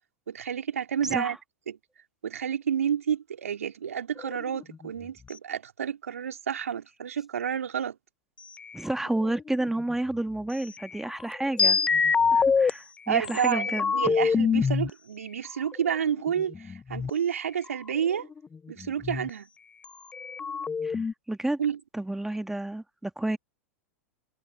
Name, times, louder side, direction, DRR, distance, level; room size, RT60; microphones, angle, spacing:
voice 1, 0.3-1.4 1.7-1.8 2.2-8.0 9.2-9.3 13.1-18.3 18.7-19.5 21.6-21.8, right 8 dB, 75° right, 3.1 m, -30 dB
voice 2, 1.0-1.3 8.7-11.8 12.3-13.9 20.8-21.0 21.3-21.6 21.9-23.4, right 1 dB, 5° right, 2.0 m, -30 dB
sound 1, 4.2-4.9 8.6-9.9 10.8-12.7 13.2-14.9 15.7-17.1 17.6-17.7 17.9-19.3 19.8-19.9 20.1-21.1, left 5 dB, 15° left, 0.7 m, -26 dB
figure-of-eight pair, 95°, 8 cm